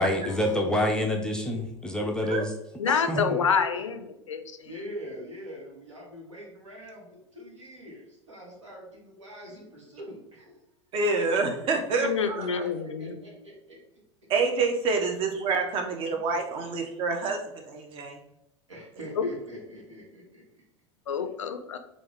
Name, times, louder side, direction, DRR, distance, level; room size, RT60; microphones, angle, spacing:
voice 1, 0.0-2.5 3.1-3.2, left 1 dB, 5° left, 1 dB, 0.4 m, -27 dB
voice 2, 2.0-2.4 3.1-3.9 4.6-10.5 10.9-11.2 11.9-13.8 16.1-16.2 16.6-16.7 18.7-20.6, equal, 75° right, -3 dB, 1.4 m, -43 dB
voice 3, 2.8-4.7 12.0-13.2 19.2-19.3 21.1-21.8, left 6 dB, 75° left, 8 dB, 0.4 m, -28 dB
voice 4, 10.9-12.6 14.3-18.2, right 4 dB, 35° right, 4 dB, 0.7 m, -27 dB
3.6 x 2.5 x 3.4 m, 0.83 s
figure-of-eight pair, 85°, 16 cm